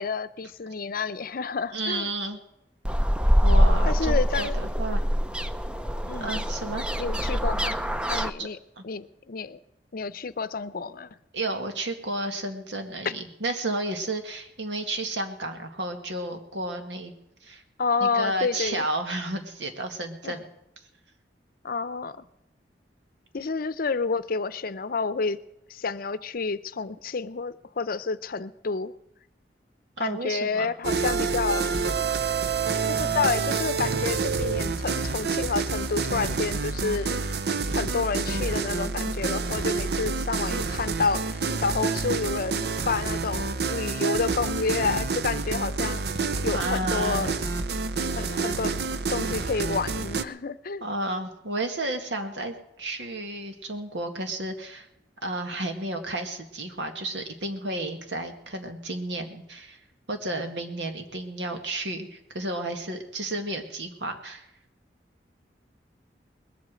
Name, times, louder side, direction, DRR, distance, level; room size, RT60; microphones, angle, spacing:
voice 1, 0.0-2.1 3.8-4.6 6.1-6.4 7.0-7.8 8.1-8.6 8.8-9.6 9.9-11.1 17.8-18.8 20.2-20.3 21.6-22.2 23.3-25.4 25.7-28.9 30.0-31.7 33.0-37.2 37.7-46.0 46.4-47.3 48.1-48.8 49.1-50.8, left 4 dB, 55° left, 15 dB, 0.6 m, -29 dB
voice 2, 1.7-2.4 3.4-5.0 6.2-6.8 8.1-8.5 8.8-8.9 11.3-17.1 17.4-17.6 18.0-20.4 30.0-30.7 46.5-47.3 50.8-54.9 55.2-59.8 60.1-64.5, right 1 dB, 90° right, 5 dB, 2.0 m, -32 dB
sound 1, 2.9-8.3, equal, 5° right, 0.5 m, -24 dB
sound 2, 30.8-50.2, right 4 dB, 65° right, 0.7 m, -28 dB
sound 3, 31.5-32.1 32.4-32.5 32.8-33.3 33.8-35.4 35.7-35.8 36.1-36.6 37.1-38.7 38.9-39.0 39.4-39.9 40.4-42.0 42.2-42.3 42.7-43.2 43.7-45.3 45.5-45.6 45.9-46.5 47.0-47.9, equal, 30° right, 0.8 m, -41 dB
20.5 x 8.2 x 7.6 m, 0.81 s
head